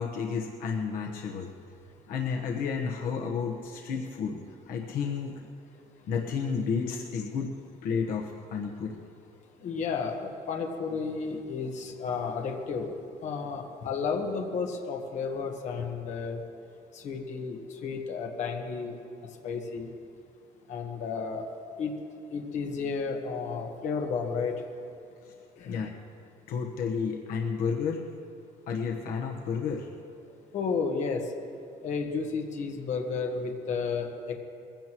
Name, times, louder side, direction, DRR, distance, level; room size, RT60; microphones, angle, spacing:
voice 1, 0.0-1.5 2.1-4.4 4.7-5.4 6.1-7.5 7.8-9.0 18.9-19.0 25.3-25.4 25.6-25.9 26.5-28.1 28.7-29.9, left 6 dB, 65° left, 1 dB, 1.2 m, -31 dB
voice 2, 9.6-12.9 13.2-16.4 17.0-18.9 19.4-19.9 20.7-21.4 21.8-21.9 22.3-24.5 25.6-25.8 30.5-31.2 31.8-34.3, left 5 dB, 45° left, 2 dB, 1.4 m, -32 dB
22.0 x 16.0 x 3.0 m, 2.7 s
cardioid pair, 180°, 16 cm